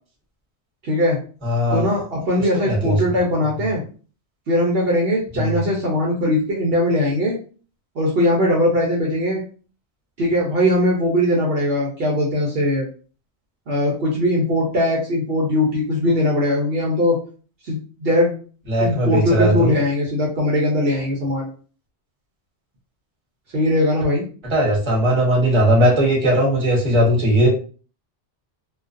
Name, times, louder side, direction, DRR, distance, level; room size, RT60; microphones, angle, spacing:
voice 1, 0.8-1.2 1.7-3.8 4.5-7.4 8.0-9.4 10.2-12.9 13.7-17.2 17.6-18.3 18.8-21.5 23.5-24.2, left 1 dB, 65° right, -3 dB, 0.8 m, -20 dB
voice 2, 1.4-1.9 2.7-3.0 5.3-5.5 18.7-19.7 24.5-27.5, equal, 25° right, -4 dB, 0.9 m, -18 dB
2.3 x 2.3 x 2.5 m, 0.39 s
omnidirectional pair, 1.1 m